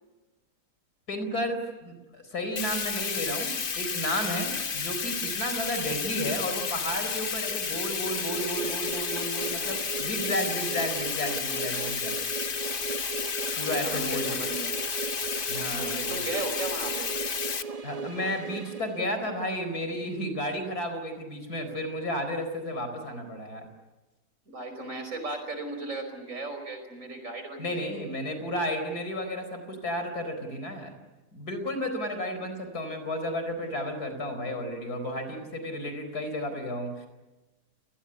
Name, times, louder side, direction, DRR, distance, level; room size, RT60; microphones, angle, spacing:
voice 1, 1.1-12.2 13.6-14.4 15.5-16.1 17.8-23.7 27.6-30.9 31.3-37.1, equal, 65° left, 8 dB, 4.9 m, -32 dB
Bathtub (filling or washing), 2.6-17.6, left 6 dB, 40° left, 1.0 m, -32 dB
sound 1, 7.7-19.6, right 4 dB, 30° right, 0.9 m, -38 dB
voice 2, 13.8-14.7 15.7-17.1 24.5-27.9 34.4-34.6, right 2 dB, 50° right, 6 dB, 5.5 m, -36 dB
29.5 x 19.5 x 9.8 m, 1.2 s
omnidirectional pair, 1.8 m